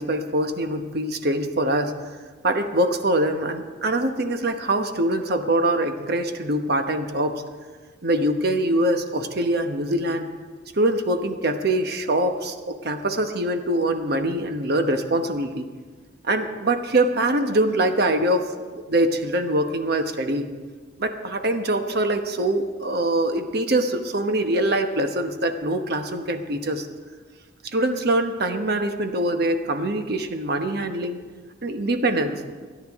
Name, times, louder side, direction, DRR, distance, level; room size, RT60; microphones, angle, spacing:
voice 1, 0.0-1.9 2.4-7.4 8.0-10.3 10.7-15.6 16.2-20.5 21.0-26.9 27.7-31.2 31.6-32.4, right 1 dB, 60° right, 7 dB, 1.0 m, -23 dB
26.5 x 9.6 x 3.6 m, 1.5 s
head